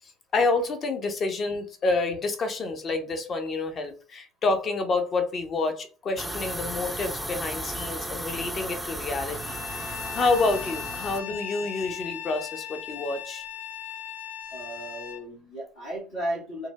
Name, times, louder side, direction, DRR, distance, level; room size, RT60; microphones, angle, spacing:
voice 1, 0.3-13.4, left 3 dB, 40° left, 0.6 m, -28 dB
sound 1, 6.2-11.2, right 1 dB, 5° right, 0.4 m, -34 dB
Bowed string instrument, 9.3-15.2, left 9 dB, 85° left, 0.3 m, -38 dB
voice 2, 14.5-16.7, right 1 dB, 70° left, 1.1 m, -34 dB
3.1 x 2.1 x 2.2 m
hypercardioid pair, 65°, 0 cm